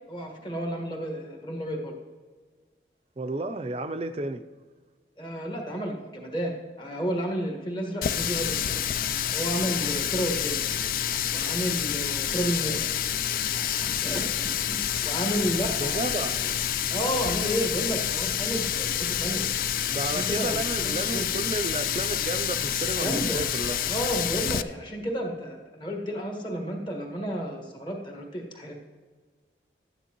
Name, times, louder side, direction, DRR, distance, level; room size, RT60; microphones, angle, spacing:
voice 1, 0.1-1.9 5.2-8.8 9.3-10.6 11.3-13.0 13.8-16.5 16.9-19.4 19.8-21.3 23.0-23.4 23.8-28.8, equal, 25° left, 1 dB, 1.5 m, -32 dB
voice 2, 3.2-4.4 15.8-16.5 19.9-23.8, right 2 dB, 35° right, 9 dB, 0.4 m, -32 dB
Water tap faucet, 8.0-24.6, left 10 dB, 50° left, 0.3 m, -28 dB
13.0 x 9.7 x 3.0 m, 1.4 s
head